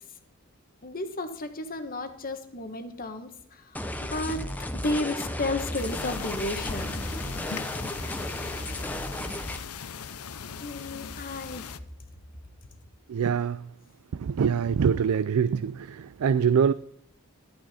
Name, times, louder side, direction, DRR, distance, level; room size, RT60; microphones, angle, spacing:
voice 1, 0.8-3.6 4.0-7.0 10.6-11.7, left 2 dB, 40° left, 1.2 m, -33 dB
sound 1, 3.7-9.6, left 1 dB, 5° left, 0.7 m, -34 dB
sound 2, 5.7-11.8, left 7 dB, 90° left, 0.7 m, -39 dB
voice 2, 13.1-13.7 14.1-16.7, right 7 dB, 80° right, 0.4 m, -24 dB
13.0 x 9.0 x 4.2 m
head